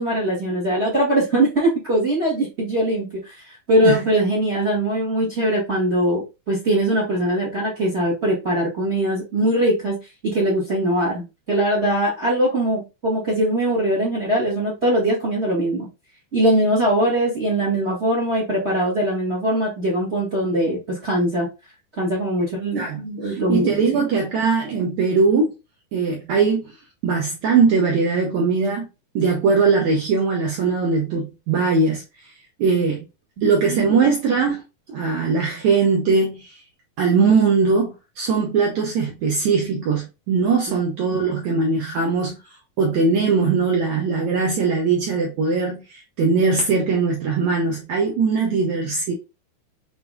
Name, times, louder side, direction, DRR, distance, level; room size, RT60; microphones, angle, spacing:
voice 1, 0.0-10.0 10.2-15.9 16.3-21.5 22.0-24.0 33.4-34.1 40.7-40.8, right 1 dB, 30° right, 1.1 m, -21 dB
voice 2, 22.7-25.5 25.9-26.7 27.0-28.9 29.1-32.0 32.6-33.0 33.4-34.6 34.9-36.5 37.0-42.4 42.8-49.1, right 4 dB, 75° right, 1.7 m, -20 dB
6.8 x 3.3 x 2.2 m
omnidirectional pair, 4.6 m